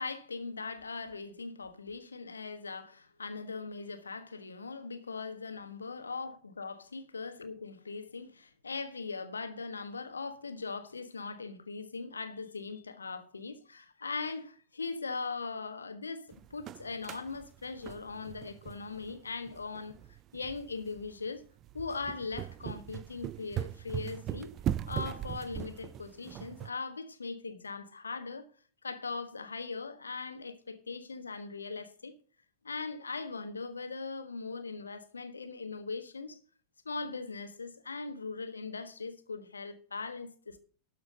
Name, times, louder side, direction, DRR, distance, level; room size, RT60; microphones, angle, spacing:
voice 1, 0.0-19.9 20.3-21.4 21.7-24.5 24.9-28.5 28.8-32.1 32.6-36.4 36.8-40.6, left 4 dB, 75° left, 1.3 m, -40 dB
sound 1, 16.3-26.7, right 11 dB, 30° right, 0.4 m, -40 dB
12.5 x 5.8 x 6.7 m
figure-of-eight pair, 90°, 0 cm